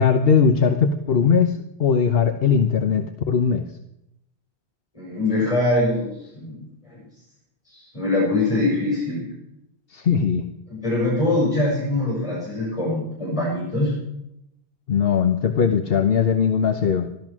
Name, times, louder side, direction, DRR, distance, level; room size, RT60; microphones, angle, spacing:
voice 1, 0.0-3.6 9.9-10.4 14.9-17.1, left 6 dB, 65° left, 6 dB, 1.1 m, -19 dB
voice 2, 4.9-6.6 6.8-7.1 7.7-9.3 10.7-14.0, left 2 dB, 30° left, -5 dB, 6.8 m, -23 dB
15.5 x 13.0 x 6.1 m, 0.83 s
omnidirectional pair, 1.1 m